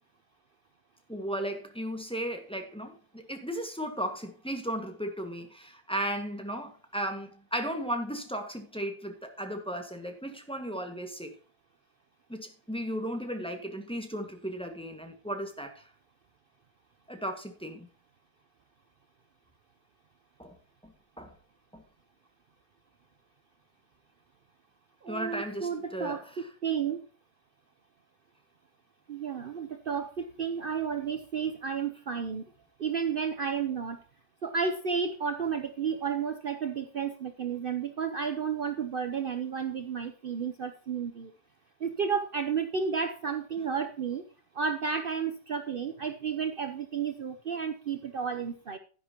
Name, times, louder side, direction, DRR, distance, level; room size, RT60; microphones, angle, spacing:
voice 1, 1.1-11.3 12.3-15.9 17.1-17.9 20.4-20.6 20.8-21.3 21.7-21.8 25.1-26.5, equal, 5° left, 1.6 m, -35 dB
voice 2, 25.0-27.0 29.1-32.5 32.8-34.0 34.4-41.3 41.8-44.2 44.5-48.8, right 6 dB, 55° right, 0.6 m, -32 dB
12.0 x 10.5 x 3.0 m
omnidirectional pair, 2.0 m